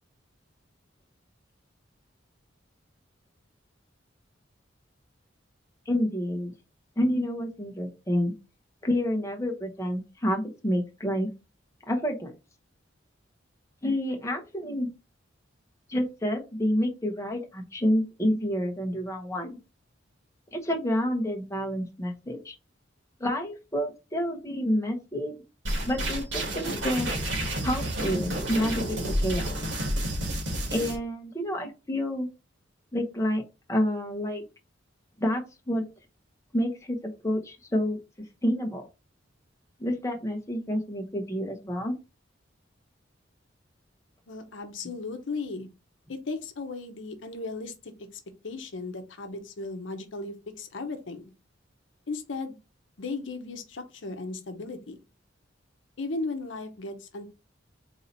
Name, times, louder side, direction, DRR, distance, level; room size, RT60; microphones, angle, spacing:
voice 1, 5.9-6.5 7.0-8.3 8.8-11.3 11.9-12.3 13.8-14.9 15.9-19.6 20.5-22.5 23.2-25.4 25.8-27.1 27.6-29.5 30.7-32.3 32.9-33.4 33.7-34.4 35.2-35.8 36.5-38.0 38.4-38.8 39.8-41.9, equal, 15° left, 0.8 m, -28 dB
sound 1, 25.7-31.0, right 1 dB, 85° right, 1.9 m, -30 dB
voice 2, 44.3-45.7 46.1-48.1 48.4-51.3 52.1-52.6 53.0-55.0 56.0-57.3, left 3 dB, 75° left, 0.8 m, -36 dB
4.0 x 2.8 x 3.9 m
head